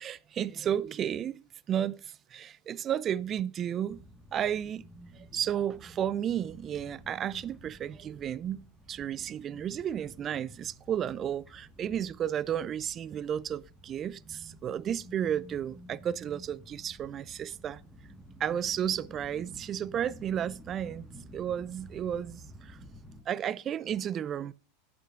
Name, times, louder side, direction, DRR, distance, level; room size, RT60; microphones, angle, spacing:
voice 1, 0.0-1.4 1.7-4.0 4.3-4.8 5.1-17.8 18.4-21.1 21.3-22.8 23.3-24.5, right 9 dB, 30° right, 0.4 m, -33 dB
sound 1, 3.9-23.2, right 1 dB, 10° right, 1.4 m, -52 dB
11.0 x 8.3 x 2.4 m
figure-of-eight pair, 85°, 0 cm